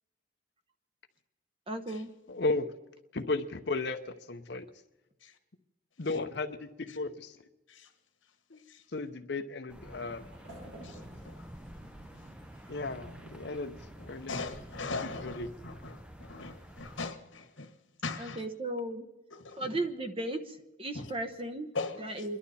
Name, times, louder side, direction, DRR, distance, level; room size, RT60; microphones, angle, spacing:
voice 1, 1.7-2.1 18.2-19.0 19.6-21.7 22.0-22.4, right 1 dB, 30° right, 1.0 m, -35 dB
voice 2, 2.3-2.7 3.1-4.7 6.0-7.4 8.5-8.6 8.9-10.2 12.7-13.8 14.1-14.6 15.0-15.5, left 3 dB, 60° left, 0.8 m, -35 dB
sound 1, 9.7-17.1, equal, 5° right, 0.6 m, -49 dB
sound 2, 10.2-15.2, right 1 dB, 75° right, 6.1 m, -53 dB
voice 3, 10.8-11.4 14.0-17.7 18.0-18.4 19.3-19.6 20.9-21.1 21.7-22.2, left 3 dB, 80° left, 1.6 m, -40 dB
29.0 x 11.5 x 4.3 m
head